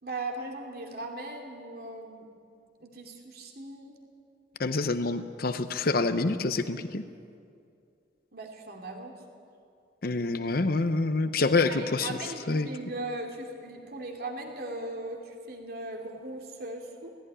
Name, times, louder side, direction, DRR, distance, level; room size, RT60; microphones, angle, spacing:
voice 1, 0.0-2.3 2.8-4.0 8.3-9.1 11.7-17.1, right 2 dB, 55° right, 1 dB, 2.8 m, -38 dB
voice 2, 4.6-7.0 10.0-12.2 12.5-12.7, left 3 dB, 55° left, 10 dB, 0.8 m, -27 dB
17.5 x 16.0 x 10.0 m, 2.4 s
head